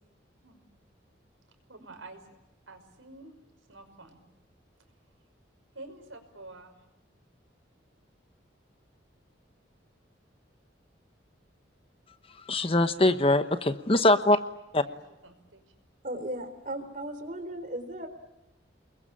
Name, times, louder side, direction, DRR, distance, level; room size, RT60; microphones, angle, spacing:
voice 1, 1.7-2.2 2.7-3.3 3.7-4.2 5.7-6.8 14.8-15.0 15.2-15.6, right 2 dB, 85° right, 6 dB, 5.5 m, -48 dB
voice 2, 12.5-14.4 14.7-14.8, left 1 dB, 30° left, 10 dB, 1.1 m, -22 dB
voice 3, 16.0-18.1, right 1 dB, 40° right, 8 dB, 3.8 m, -36 dB
30.0 x 22.0 x 8.8 m, 0.93 s
head